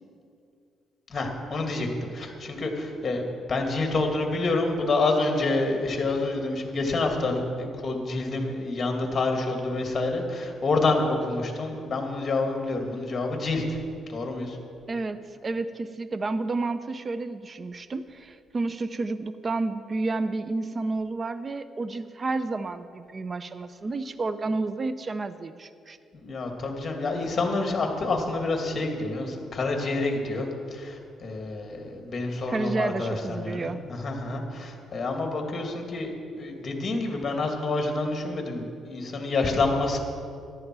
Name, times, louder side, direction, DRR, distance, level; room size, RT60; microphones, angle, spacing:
voice 1, 1.1-1.9 2.1-3.2 3.5-13.8 14.1-14.6 26.1-36.1 36.4-40.0, left 3 dB, 35° left, 2 dB, 2.4 m, -28 dB
voice 2, 14.9-26.0 32.5-33.8, right 3 dB, 35° right, 12 dB, 0.5 m, -30 dB
14.0 x 11.5 x 4.7 m, 2.4 s
cardioid pair, 90°, 0 cm